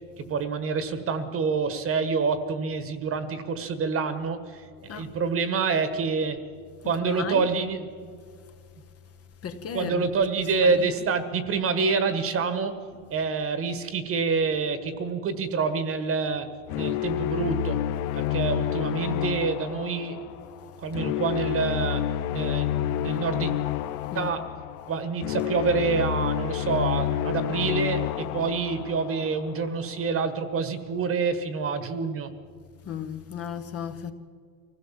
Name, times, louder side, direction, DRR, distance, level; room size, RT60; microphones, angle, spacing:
voice 1, 0.2-6.4 6.8-8.1 9.7-12.8 13.1-16.5 16.7-17.8 18.1-20.2 20.8-22.1 22.3-23.5 24.1-24.5 24.9-32.3, right 5 dB, 30° right, 1.5 m, -27 dB
voice 2, 7.0-7.5 9.4-10.1 10.6-10.9 24.1-24.3 32.8-34.1, left 8 dB, 35° left, 1.2 m, -34 dB
sound 1, 16.7-29.8, left 11 dB, 80° left, 0.9 m, -29 dB
24.0 x 16.5 x 7.5 m
supercardioid pair, 140°, 43 cm